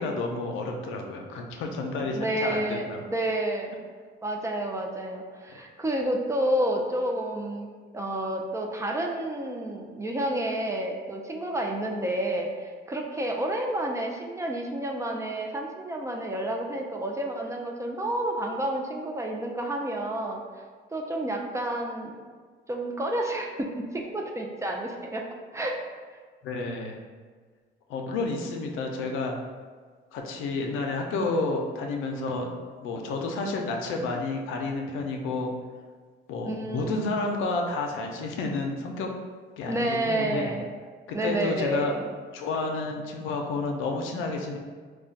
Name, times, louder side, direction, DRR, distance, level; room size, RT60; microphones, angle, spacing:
voice 1, 0.0-3.0 26.4-27.0 27.9-29.4 30.1-32.5 32.8-35.5 36.3-39.1 39.6-40.5 41.1-42.0 42.3-44.6, left 3 dB, 90° left, 2 dB, 0.4 m, -30 dB
voice 2, 2.1-3.7 4.2-7.7 7.9-20.4 20.9-22.2 22.7-25.2 25.5-25.8 36.4-37.3 39.6-40.7 41.1-42.1, right 1 dB, 15° right, 1 dB, 0.3 m, -30 dB
2.3 x 2.1 x 3.9 m, 1.5 s
cardioid pair, 90°, 20 cm